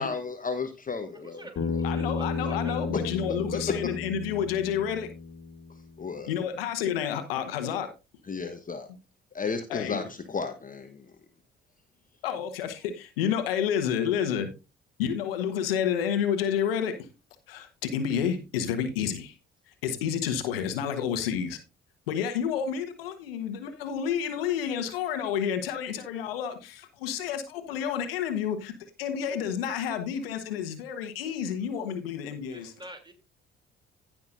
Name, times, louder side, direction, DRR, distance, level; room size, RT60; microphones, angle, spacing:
voice 1, 0.0-1.5 1.7-1.9 2.9-3.9 6.0-6.3 8.3-8.9 9.3-11.1, left 4 dB, 30° left, 1.1 m, -33 dB
voice 2, 1.1-2.8 32.5-33.1, right 1 dB, 15° right, 3.0 m, -46 dB
Bass guitar, 1.6-5.9, left 4 dB, 50° left, 2.1 m, -33 dB
voice 3, 1.8-5.1 6.3-7.9 9.7-10.0 12.2-14.5 15.0-16.9 17.5-19.3 19.8-21.6 22.1-28.7 29.0-32.7, left 8 dB, 80° left, 1.2 m, -30 dB
16.0 x 6.0 x 2.6 m
hypercardioid pair, 45°, 29 cm